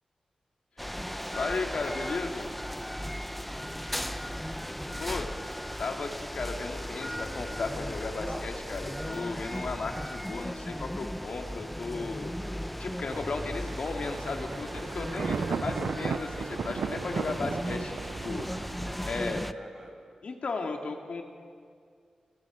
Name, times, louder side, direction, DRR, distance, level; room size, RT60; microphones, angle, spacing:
sound 1, 0.8-19.5, equal, 5° left, 0.7 m, -36 dB
voice 1, 1.3-2.5 5.0-5.3 5.8-12.3 12.8-18.5 19.1-19.4 20.2-21.2, left 3 dB, 70° left, 2 dB, 2.4 m, -35 dB
voice 2, 3.6-5.4 18.8-20.0, equal, 15° right, 0 dB, 5.8 m, -52 dB
Thunder, 13.1-19.5, right 6 dB, 85° right, 0.4 m, -36 dB
29.0 x 18.0 x 5.1 m, 2.2 s
cardioid pair, 55°, 2 cm